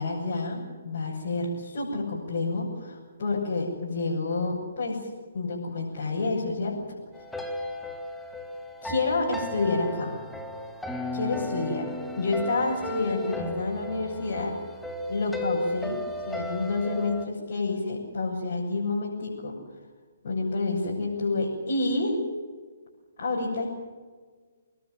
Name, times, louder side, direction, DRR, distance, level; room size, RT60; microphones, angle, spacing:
voice 1, 0.0-7.0 8.8-10.2 11.1-11.9 12.2-14.6 15.1-19.6 20.2-22.2 23.2-23.7, left 3 dB, 50° left, -4 dB, 7.2 m, -29 dB
sound 1, 7.1-17.3, left 1 dB, 5° left, 2.3 m, -35 dB
27.5 x 20.5 x 7.9 m, 1.5 s
figure-of-eight pair, 130°, 0 cm